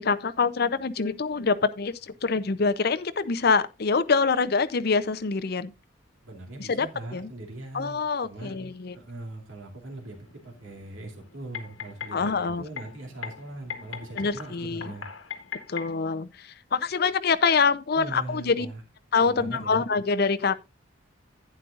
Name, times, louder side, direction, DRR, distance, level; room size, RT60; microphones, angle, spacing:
voice 1, 0.0-5.7 6.6-6.9 7.1-7.3 7.7-9.0 12.1-12.6 14.2-14.9 15.7-18.7 19.1-20.6, left 4 dB, 50° left, 0.6 m, -25 dB
voice 2, 6.2-8.6 8.9-10.2 10.4-15.1 17.9-18.8 19.2-19.8, right 2 dB, 85° right, 2.5 m, -40 dB
sound 1, 9.9-15.9, left 7 dB, 80° left, 1.6 m, -41 dB
11.5 x 9.2 x 2.4 m
head